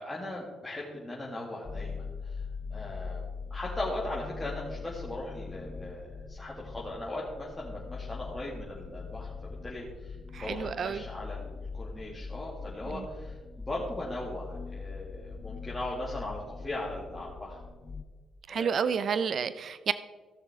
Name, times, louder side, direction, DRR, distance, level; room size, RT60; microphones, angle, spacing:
voice 1, 0.0-2.4 2.7-3.2 3.5-9.3 9.6-17.6 18.5-18.9 19.2-19.3, left 1 dB, 15° left, -5 dB, 2.2 m, -38 dB
sound 1, 1.6-18.0, left 5 dB, 35° left, 0.7 m, -41 dB
voice 2, 10.3-11.0 12.9-13.0 18.5-19.9, right 7 dB, 55° right, 14 dB, 0.4 m, -30 dB
15.5 x 6.5 x 3.6 m, 1.4 s
cardioid pair, 90°, 0 cm